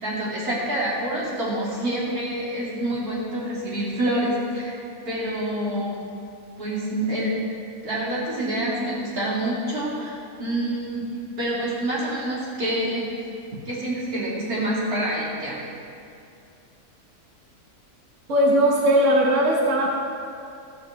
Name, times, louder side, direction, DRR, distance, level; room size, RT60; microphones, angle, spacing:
voice 1, 0.0-4.8 5.1-6.0 6.6-7.4 7.8-11.1 11.4-13.3 13.7-15.6, right 1 dB, 85° right, -7 dB, 3.5 m, -27 dB
voice 2, 18.3-19.9, equal, 55° right, -2 dB, 1.4 m, -19 dB
15.0 x 5.1 x 7.4 m, 2.5 s
omnidirectional pair, 1.5 m